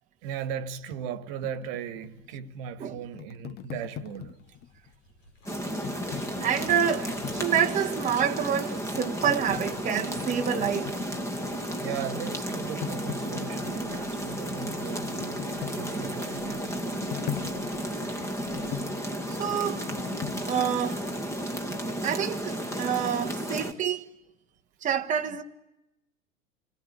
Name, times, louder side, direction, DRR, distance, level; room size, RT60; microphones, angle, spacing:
voice 1, 0.2-4.4 7.0-7.1 11.8-17.0 18.0-18.2 18.7-18.9 19.3-19.4 25.3-25.4, right 8 dB, 45° right, 1.8 m, -38 dB
sound 1, 1.4-4.9 5.5-8.3 8.7-11.9 12.2-20.4, left 12 dB, 25° left, 0.9 m, -41 dB
sound 2, 3.8-18.8, left 2 dB, 65° left, 7.0 m, -54 dB
sound 3, 5.4-23.7, equal, 5° left, 2.2 m, -33 dB
voice 2, 6.4-11.0 19.3-19.9 20.5-21.1 21.7-24.1 24.8-25.4, right 8 dB, 20° right, 1.3 m, -28 dB
29.0 x 20.0 x 9.8 m
figure-of-eight pair, 95°, 40 cm